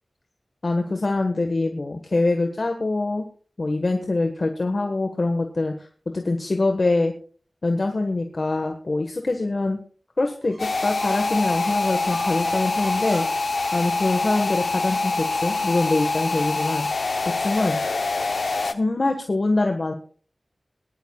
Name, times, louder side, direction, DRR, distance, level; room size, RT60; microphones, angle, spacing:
voice 1, 0.6-3.3 3.6-5.7 6.1-7.1 7.6-9.8 10.2-16.9 17.3-17.8 18.6-19.9, left 2 dB, 55° left, 4 dB, 1.4 m, -24 dB
sound 1, 10.4-14.5, right 1 dB, 65° right, 7.5 m, -41 dB
sound 2, 10.6-18.7, left 3 dB, 75° left, 0.8 m, -25 dB
21.0 x 11.5 x 2.3 m, 0.43 s
wide cardioid pair, 80°, 0 cm